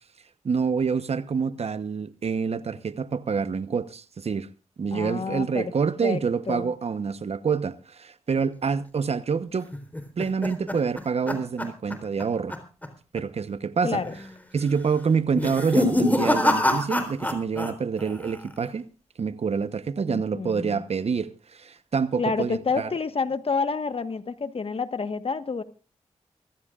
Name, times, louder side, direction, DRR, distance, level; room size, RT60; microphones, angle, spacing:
voice 1, 0.4-4.5 4.8-9.7 10.2-12.5 13.1-14.0 14.5-18.9 19.2-22.9, right 5 dB, 60° right, 1.1 m, -27 dB
voice 2, 4.9-5.7 6.0-6.7 13.8-14.2 20.0-20.8 22.2-25.6, left 4 dB, 55° left, 1.4 m, -29 dB
sound 1, 9.7-12.2 12.5-12.9 13.2-13.3 14.0-14.4 15.3-17.7 18.0-18.6, left 1 dB, 15° left, 3.8 m, -25 dB
24.5 x 15.5 x 2.5 m
cardioid pair, 55°, 12 cm